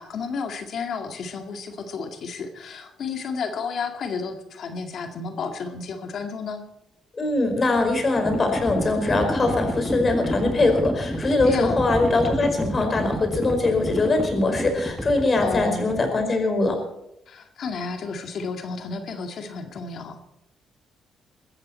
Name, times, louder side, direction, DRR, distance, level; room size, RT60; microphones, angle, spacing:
voice 1, 0.0-6.6 11.4-11.9 15.4-15.9 17.3-20.2, left 5 dB, 60° left, 5 dB, 2.1 m, -32 dB
voice 2, 7.2-16.8, left 2 dB, 35° left, 5 dB, 4.9 m, -22 dB
Livestock farm animals working animals, 7.4-16.4, equal, 5° left, 2.4 m, -30 dB
22.0 x 14.0 x 4.4 m, 0.82 s
cardioid pair, 90°, 0 cm